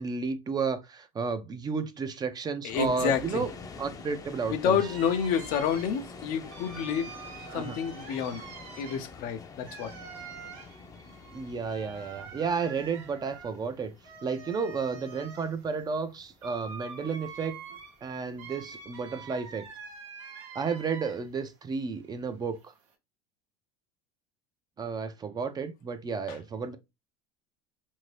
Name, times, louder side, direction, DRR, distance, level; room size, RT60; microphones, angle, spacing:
voice 1, 0.0-3.5 3.8-4.8 7.5-7.8 11.3-13.9 14.2-17.6 18.0-19.6 20.5-22.6 24.8-26.8, right 5 dB, 25° right, 0.5 m, -32 dB
voice 2, 2.6-3.4 4.5-7.1 7.5-8.4 8.8-9.9 26.3-26.4, left 7 dB, 65° left, 0.6 m, -29 dB
sound 1, 2.7-19.7, left 4 dB, 25° left, 0.6 m, -48 dB
sound 2, 4.8-21.4 21.8-22.9, right 5 dB, 80° right, 0.9 m, -46 dB
2.8 x 2.7 x 3.2 m
supercardioid pair, 95°, 15 cm